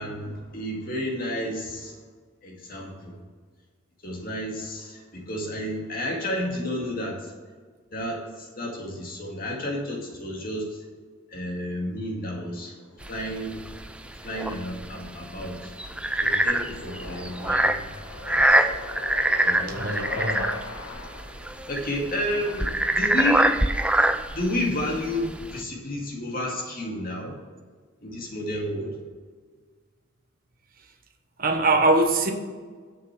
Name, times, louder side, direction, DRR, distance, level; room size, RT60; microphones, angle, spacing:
voice 1, 0.0-1.9 2.4-3.2 4.0-7.3 7.9-10.8 11.3-12.7 13.1-13.6 14.2-15.7 16.2-17.8 18.2-18.7 19.4-19.8 21.7-23.5 24.0-27.4 28.0-28.9, left 1 dB, 45° left, -1 dB, 2.2 m, -31 dB
sound 1, 12.3-23.4, left 2 dB, 80° left, 1.3 m, -41 dB
sound 2, 13.0-25.6, right 1 dB, 5° right, 0.3 m, -25 dB
voice 2, 19.7-20.7 31.4-32.3, right 2 dB, 40° right, 4 dB, 1.1 m, -23 dB
7.6 x 6.8 x 6.1 m, 1.5 s
head